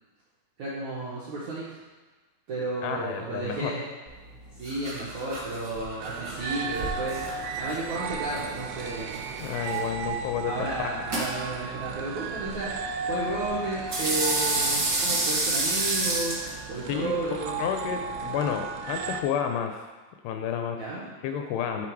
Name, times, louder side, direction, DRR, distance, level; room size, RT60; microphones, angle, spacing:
voice 1, 0.6-1.8 2.5-3.8 4.6-7.2 7.5-9.2 10.4-12.7 13.0-16.4 16.7-17.6 20.8-21.1, right 2 dB, 75° right, -8 dB, 1.7 m, -32 dB
voice 2, 2.8-3.7 9.4-10.9 16.9-17.1 17.6-19.9 20.2-20.8 21.2-21.9, left 8 dB, 85° left, 5 dB, 2.4 m, -30 dB
sound 1, 4.1-18.3, right 2 dB, 55° right, 1.3 m, -32 dB
sound 2, 6.0-19.2, right 5 dB, 90° right, 2.9 m, -35 dB
11.0 x 3.6 x 4.5 m, 1.3 s
omnidirectional pair, 5.0 m